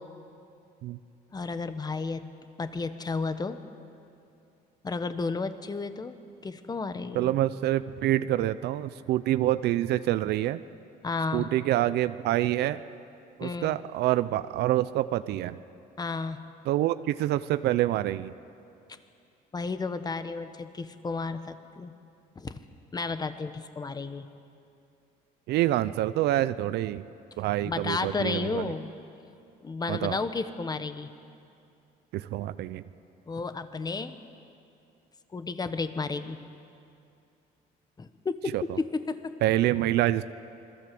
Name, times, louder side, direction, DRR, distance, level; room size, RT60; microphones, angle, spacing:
voice 1, 1.3-2.2 2.6-3.6 4.8-6.1 6.4-7.3 11.0-11.5 13.4-13.8 16.0-16.4 19.5-21.9 22.3-22.6 22.9-24.3 27.6-28.9 29.6-31.1 33.3-34.2 35.3-36.4 38.0-39.3, left 4 dB, 25° left, 10 dB, 1.3 m, -32 dB
voice 2, 7.1-10.6 11.3-12.8 13.4-15.6 16.7-18.3 25.5-27.0 27.4-28.7 29.9-30.2 32.1-32.8 38.5-38.6 39.4-40.2, right 14 dB, 80° right, 13 dB, 0.7 m, -26 dB
27.5 x 21.5 x 7.8 m, 2.6 s
cardioid pair, 110°, 17 cm